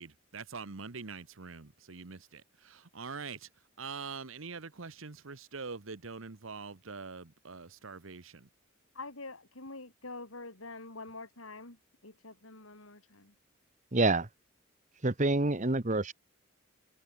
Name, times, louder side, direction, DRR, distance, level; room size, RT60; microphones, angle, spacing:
voice 1, 0.0-3.5 3.8-8.5, right 4 dB, 75° right, 1.2 m, -44 dB
voice 2, 8.9-11.8 12.0-13.3, left 3 dB, 90° left, 5.1 m, -46 dB
voice 3, 13.9-14.3 15.0-16.1, right 2 dB, 35° right, 1.3 m, -27 dB
head